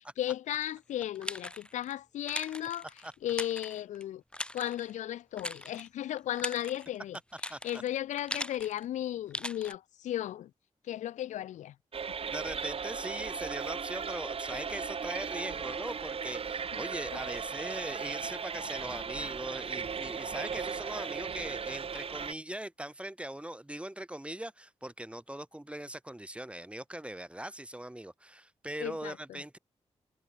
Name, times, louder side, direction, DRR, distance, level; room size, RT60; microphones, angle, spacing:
voice 1, 0.2-2.9 3.2-4.2 4.5-7.2 7.6-10.5 10.9-11.7 28.8-29.4, left 12 dB, 85° left, 0.4 m, -35 dB
sound 1, 0.6-1.9 2.3-4.0 4.3-4.9 5.4-5.9 6.2-8.9 9.3-9.8, left 1 dB, 10° left, 2.1 m, -40 dB
voice 2, 7.5-7.8 12.3-29.6, right 1 dB, 10° right, 0.6 m, -40 dB
sound 2, 11.9-22.3, right 6 dB, 50° right, 0.7 m, -37 dB
supercardioid pair, 45°, 12 cm